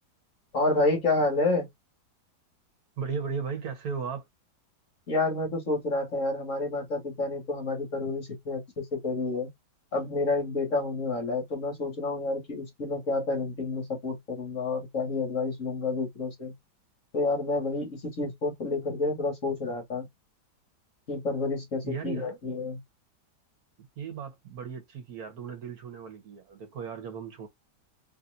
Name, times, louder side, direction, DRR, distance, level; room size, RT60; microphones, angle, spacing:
voice 1, 0.5-1.7 5.1-9.5 9.9-16.5 17.1-20.0 21.1-22.8, left 3 dB, 50° left, 2.1 m, -29 dB
voice 2, 3.0-4.2 21.8-22.4 24.0-27.5, right 6 dB, 60° right, 1.3 m, -36 dB
4.1 x 3.3 x 2.5 m
omnidirectional pair, 1.8 m